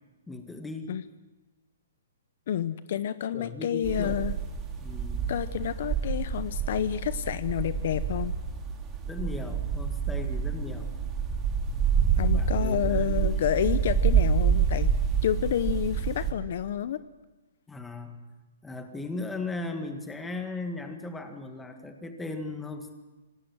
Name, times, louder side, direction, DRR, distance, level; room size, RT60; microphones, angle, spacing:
voice 1, 0.3-1.0 2.9-3.0 3.3-4.2 4.8-5.3 9.1-10.9 12.1-13.3 17.7-18.2 18.6-22.9, left 3 dB, 5° left, 5 dB, 1.8 m, -37 dB
voice 2, 2.5-4.3 5.3-8.3 12.2-14.9 15.2-17.0, left 10 dB, 50° left, 14 dB, 0.7 m, -29 dB
sound 1, 3.8-16.3, right 7 dB, 15° right, 2.5 m, -27 dB
26.0 x 19.0 x 6.2 m, 1.1 s
hypercardioid pair, 160°, 0 cm